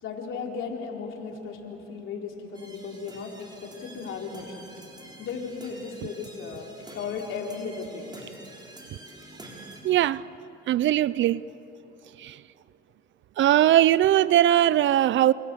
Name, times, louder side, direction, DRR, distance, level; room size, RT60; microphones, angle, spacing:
voice 1, 0.0-4.7 5.2-8.2, left 5 dB, 80° left, 4.0 m, -36 dB
sound 1, 2.5-9.8, right 1 dB, 20° right, 5.7 m, -47 dB
voice 2, 9.8-10.2 10.7-11.4 12.2-12.4 13.4-15.3, right 12 dB, 70° right, 0.5 m, -20 dB
29.0 x 28.0 x 7.0 m
cardioid pair, 90°, 20 cm